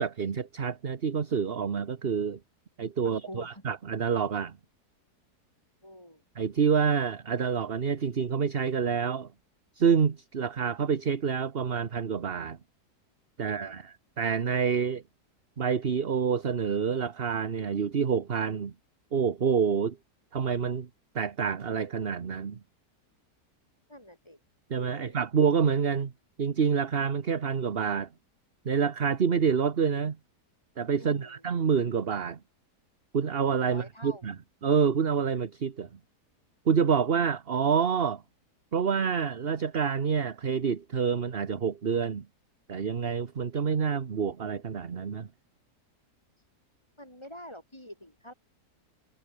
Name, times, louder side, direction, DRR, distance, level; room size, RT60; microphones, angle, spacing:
voice 1, 0.0-2.4 2.8-4.6 6.4-9.3 9.7-12.6 13.4-15.0 15.6-18.7 19.1-20.0 20.3-20.9 21.1-22.6 24.7-26.1 26.4-28.1 28.6-30.2 30.8-32.4 33.1-34.3 34.6-35.9 36.6-38.2 38.7-42.3 42.7-45.3, right 6 dB, 40° right, 1.3 m, -27 dB
voice 2, 3.0-3.7 5.8-6.2 13.4-13.8 23.9-24.4 24.9-25.2 31.0-31.4 33.7-34.2 46.4-46.5 47.0-48.3, equal, 15° left, 7.3 m, -47 dB
omnidirectional pair, 1.8 m